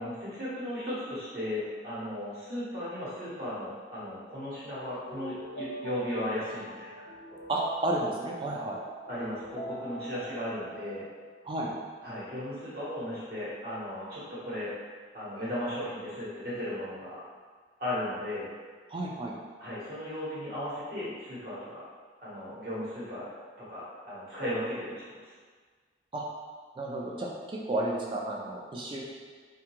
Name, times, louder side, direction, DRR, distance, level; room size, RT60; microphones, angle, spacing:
voice 1, 0.0-7.0 9.1-11.0 12.0-14.7 15.1-17.2 17.8-18.5 19.6-21.8 22.2-23.3 23.6-25.2, left 1 dB, 55° right, -9 dB, 1.0 m, -36 dB
sound 1, 4.9-11.3, right 1 dB, 80° left, 0.8 m, -43 dB
voice 2, 7.5-8.8 11.4-11.7 18.9-19.4 26.1-26.3 26.8-29.0, right 2 dB, 25° right, -2 dB, 0.3 m, -32 dB
2.6 x 2.3 x 2.9 m, 1.5 s
head